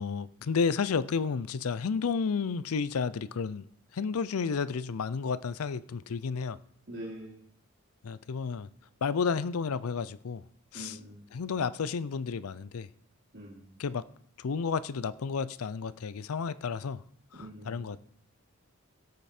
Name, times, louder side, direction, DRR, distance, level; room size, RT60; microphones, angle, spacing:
voice 1, 0.0-3.7 3.9-6.6 8.0-8.7 9.0-10.4 10.7-11.0 11.3-12.9 13.8-14.1 14.4-17.0 17.3-18.0, left 5 dB, 85° left, 0.5 m, -31 dB
voice 2, 6.9-7.4 10.7-11.2 13.3-13.8 17.3-17.9, right 1 dB, 50° right, 2.7 m, -44 dB
16.5 x 6.6 x 4.4 m
head